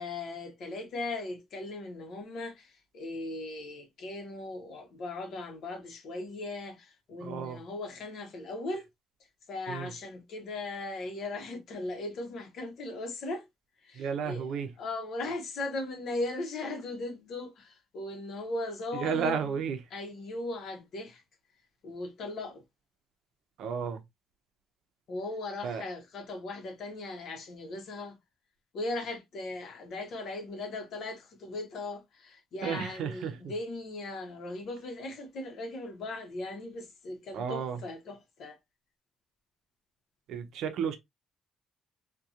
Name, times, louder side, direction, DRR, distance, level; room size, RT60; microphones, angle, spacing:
voice 1, 0.0-8.9 9.5-13.5 13.8-19.6 19.9-21.2 21.8-22.6 25.1-28.2 28.7-38.6, left 2 dB, 70° left, 0.8 m, -38 dB
voice 2, 7.2-7.6 9.7-9.9 14.0-14.7 18.9-19.8 23.6-24.0 25.6-25.9 32.6-33.4 37.3-37.8 40.3-41.0, right 7 dB, 80° right, 0.5 m, -32 dB
2.7 x 2.2 x 2.3 m
cardioid pair, 90°, 0 cm